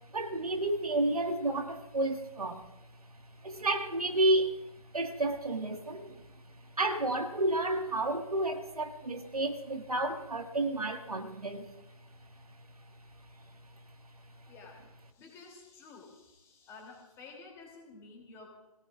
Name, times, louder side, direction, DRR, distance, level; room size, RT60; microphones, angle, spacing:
voice 1, 0.1-2.6 3.4-4.5 4.9-6.2 6.8-11.7, right 2 dB, 70° right, 6 dB, 1.7 m, -31 dB
voice 2, 14.5-14.8 15.1-18.5, left 4 dB, 15° left, 0 dB, 2.7 m, -51 dB
26.5 x 17.5 x 2.4 m, 1.0 s
figure-of-eight pair, 140°, 19 cm